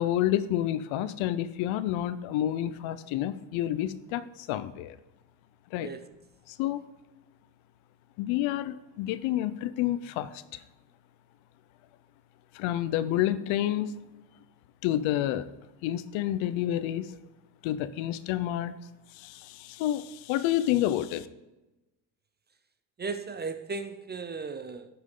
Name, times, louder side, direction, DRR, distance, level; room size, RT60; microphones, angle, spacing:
voice 1, 0.0-5.0 5.7-5.9 6.5-6.8 8.2-10.6 12.5-14.0 14.8-15.5 15.8-17.2 17.6-18.7 19.1-21.3, left 12 dB, 70° left, 14 dB, 0.7 m, -29 dB
voice 2, 23.0-24.9, right 4 dB, 20° right, 10 dB, 0.5 m, -36 dB
9.5 x 6.2 x 3.8 m, 1.0 s
supercardioid pair, 90°, 49 cm